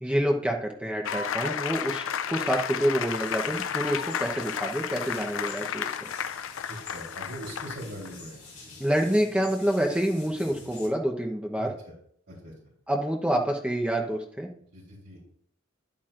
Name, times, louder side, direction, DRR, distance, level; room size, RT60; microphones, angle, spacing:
voice 1, 0.0-5.8 8.8-11.7 12.9-14.5, equal, 5° right, 0 dB, 0.9 m, -27 dB
sound 1, 1.0-8.1, left 8 dB, 70° left, 0.4 m, -32 dB
sound 2, 3.0-10.9, left 3 dB, 35° left, 4.1 m, -48 dB
voice 2, 6.7-8.4 11.6-11.9 12.3-12.5 14.7-15.2, equal, 55° right, -9 dB, 3.8 m, -41 dB
11.0 x 8.7 x 2.5 m, 0.65 s
head